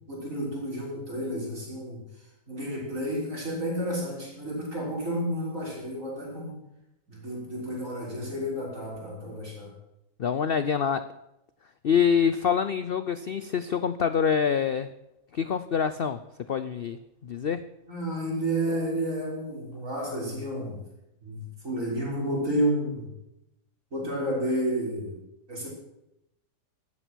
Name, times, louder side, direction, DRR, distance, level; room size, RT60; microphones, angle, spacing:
voice 1, 0.1-2.0 2.5-6.5 7.1-9.7 17.9-20.8 21.2-23.1 23.9-25.2 25.5-25.7, right 1 dB, 50° right, -3 dB, 6.2 m, -31 dB
voice 2, 10.2-11.1 11.8-14.9 15.3-16.2 16.5-17.7, left 7 dB, 70° left, 12 dB, 0.5 m, -26 dB
16.5 x 12.5 x 6.3 m, 0.89 s
omnidirectional pair, 1.8 m